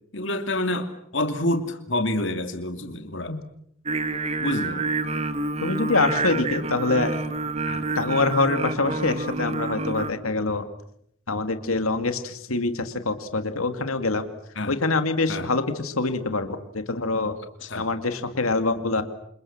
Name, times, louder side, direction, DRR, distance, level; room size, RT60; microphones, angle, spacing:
voice 1, 0.1-3.4 4.4-4.8 7.7-7.9 14.6-14.7 15.3-15.5 17.6-17.9, left 1 dB, 60° left, 7 dB, 2.6 m, -28 dB
Singing, 3.9-10.1, right 3 dB, 30° right, 1.6 m, -28 dB
voice 2, 5.6-7.2 8.0-10.7 11.3-14.2 14.7-17.4 17.7-19.0, left 3 dB, 90° left, 8 dB, 2.4 m, -25 dB
28.0 x 28.0 x 7.3 m, 0.71 s
head